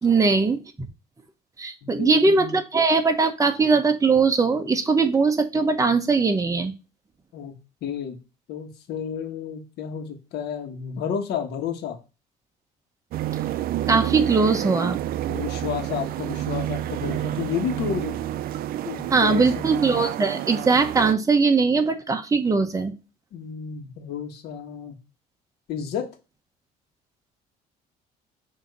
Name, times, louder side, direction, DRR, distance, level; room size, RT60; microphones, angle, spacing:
voice 1, 0.0-0.9 1.6-6.7 13.9-15.0 19.1-22.9, right 4 dB, 20° right, 6 dB, 0.9 m, -20 dB
voice 2, 1.8-2.6 7.3-7.5 7.8-8.2 8.5-12.0 15.3-18.2 18.8-19.6 23.3-25.0 25.7-26.1, left 8 dB, 75° left, 4 dB, 1.4 m, -31 dB
sound 1, 13.1-21.1, right 13 dB, 60° right, 0.4 m, -29 dB
6.9 x 2.9 x 5.4 m, 0.31 s
cardioid pair, 110°, 17 cm